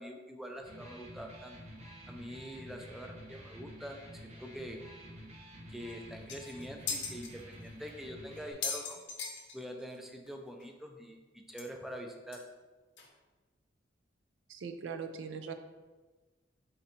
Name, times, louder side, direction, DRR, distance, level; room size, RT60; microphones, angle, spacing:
voice 1, 0.0-1.6 2.1-4.8 5.7-9.0 9.5-11.2 11.5-12.4, equal, ahead, 3 dB, 0.3 m, -45 dB
Electric guitar, 0.5-8.5, equal, 35° right, 0.8 m, -50 dB
sound 1, 5.9-6.0 6.3-7.3 7.9-8.0 8.4-10.0 10.3-10.4 10.6-10.7 11.6-11.7 12.3-12.4 13.0-13.1, left 5 dB, 65° left, 0.7 m, -38 dB
voice 2, 14.5-15.5, right 6 dB, 75° right, 8 dB, 0.4 m, -40 dB
4.2 x 2.6 x 4.2 m, 1.3 s
head